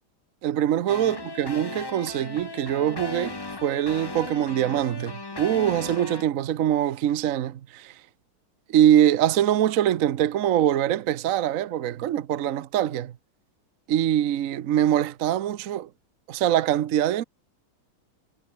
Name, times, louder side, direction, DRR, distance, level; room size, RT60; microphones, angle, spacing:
voice 1, 0.4-7.9 8.7-13.1 13.9-15.9 16.3-17.2, right 11 dB, 65° right, 0.8 m, -23 dB
sound 1, 0.9-6.2, left 3 dB, 30° left, 0.4 m, -36 dB
omnidirectional pair, 2.4 m